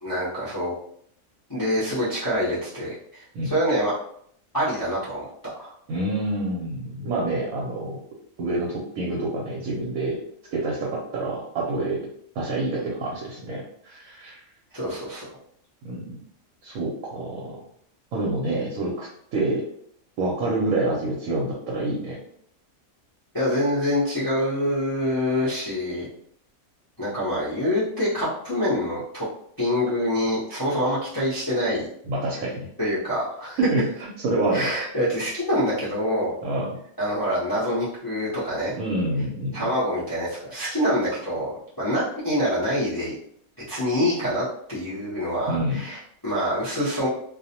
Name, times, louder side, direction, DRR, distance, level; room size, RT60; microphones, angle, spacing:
voice 1, 0.0-0.7 1.5-3.9 4.5-5.3 5.5-5.7 14.7-15.3 23.3-26.1 27.0-29.3 29.6-31.9 32.8-33.6 34.5-36.3 37.0-38.8 39.5-43.1 43.7-47.1, equal, 25° left, -9 dB, 0.5 m, -26 dB
voice 2, 5.9-8.0 8.4-10.2 10.5-12.0 12.4-14.4 15.8-16.2 16.6-17.5 18.1-19.6 20.2-22.2 32.1-32.7 33.6-34.7 36.4-36.7 38.7-39.7 45.5-45.8, right 2 dB, 80° right, -4 dB, 1.0 m, -27 dB
2.4 x 2.0 x 2.7 m, 0.65 s
omnidirectional pair, 1.5 m